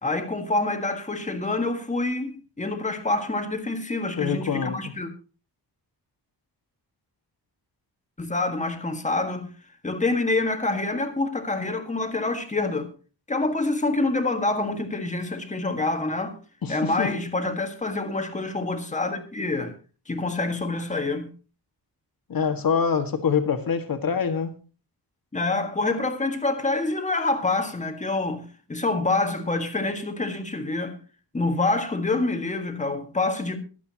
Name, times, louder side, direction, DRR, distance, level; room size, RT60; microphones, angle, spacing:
voice 1, 0.0-5.1 8.2-9.5 9.8-12.9 13.3-16.4 16.7-19.7 20.1-21.3 25.3-31.0 31.3-33.6, left 2 dB, 15° left, 1.7 m, -26 dB
voice 2, 4.2-4.8 16.6-17.1 22.3-24.5, left 6 dB, 55° left, 1.8 m, -25 dB
23.5 x 8.4 x 2.9 m
wide cardioid pair, 175°, 41 cm